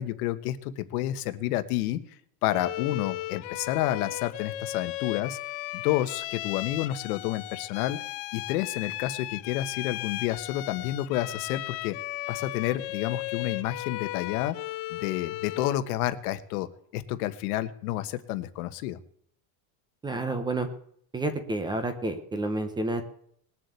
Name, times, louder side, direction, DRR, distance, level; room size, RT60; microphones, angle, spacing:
voice 1, 0.0-2.0 2.4-5.4 5.7-8.0 8.3-12.0 12.3-14.6 14.9-16.7 16.9-19.0, left 14 dB, 70° left, 11 dB, 1.4 m, -30 dB
Bowed string instrument, 2.5-15.9, left 17 dB, 55° left, 0.8 m, -36 dB
voice 2, 20.0-20.7 21.1-23.0, right 2 dB, 10° right, 9 dB, 0.9 m, -29 dB
20.0 x 7.6 x 8.3 m, 0.67 s
cardioid pair, 180°, 46 cm